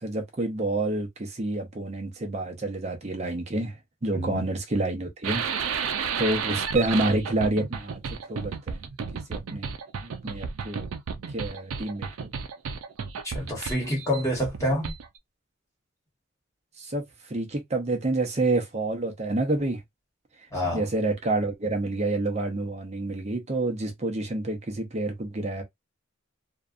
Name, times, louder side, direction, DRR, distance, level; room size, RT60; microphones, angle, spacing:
voice 1, 0.0-3.8 4.0-5.5 6.2-8.0 8.3-8.9 9.1-9.7 10.0-10.9 11.3-12.1 16.8-19.8 20.7-25.6, right 2 dB, 30° right, 0.6 m, -28 dB
voice 2, 4.1-4.4 13.2-14.9 20.5-20.8, equal, 15° left, 1.1 m, -27 dB
sound 1, 5.2-15.2, right 6 dB, 85° right, 0.4 m, -32 dB
2.6 x 2.2 x 2.4 m
head